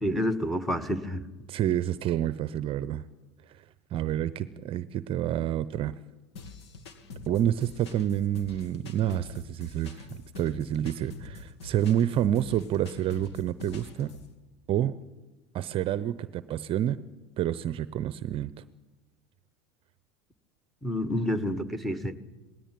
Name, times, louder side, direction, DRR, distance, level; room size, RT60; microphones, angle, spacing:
voice 1, 0.0-1.2 20.8-22.1, equal, ahead, 11 dB, 1.5 m, -29 dB
voice 2, 1.5-3.0 3.9-6.0 7.3-10.1 10.4-14.1 14.7-14.9 15.5-17.0 17.4-18.5, right 11 dB, 40° right, 16 dB, 0.7 m, -28 dB
sound 1, 6.4-14.3, left 3 dB, 85° left, 2.5 m, -45 dB
19.0 x 17.0 x 9.3 m, 1.2 s
hypercardioid pair, 100°, 14 cm